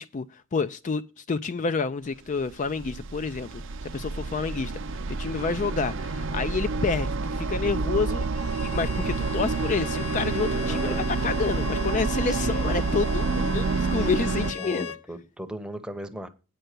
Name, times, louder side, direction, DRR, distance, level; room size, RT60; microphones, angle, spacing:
voice 1, 0.0-3.6 3.9-8.2 8.6-14.9, left 4 dB, 35° left, 0.4 m, -29 dB
sound 1, 2.4-14.5, right 4 dB, 60° right, 0.6 m, -28 dB
Bowed string instrument, 8.2-15.1, left 8 dB, 80° left, 0.6 m, -39 dB
voice 2, 10.6-11.0 12.3-12.6 14.4-16.3, equal, 5° right, 0.8 m, -37 dB
9.1 x 5.5 x 6.6 m
head